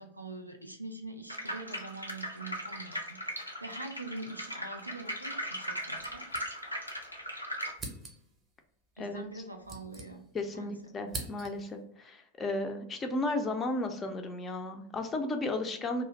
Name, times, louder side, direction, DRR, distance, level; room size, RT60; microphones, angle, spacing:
voice 1, 0.0-6.3 9.0-10.2 10.5-10.8, right 2 dB, 90° right, 4 dB, 0.4 m, -44 dB
sound 1, 1.3-7.7, equal, 85° left, 0.4 m, -38 dB
sound 2, 6.0-7.0 7.2-7.3 7.7-8.4 9.3-10.5 10.8-11.8, right 2 dB, 20° right, 0.6 m, -44 dB
voice 2, 10.3-16.1, left 2 dB, 20° left, 6 dB, 0.4 m, -34 dB
2.4 x 2.0 x 3.0 m, 0.72 s
figure-of-eight pair, 90°, 0 cm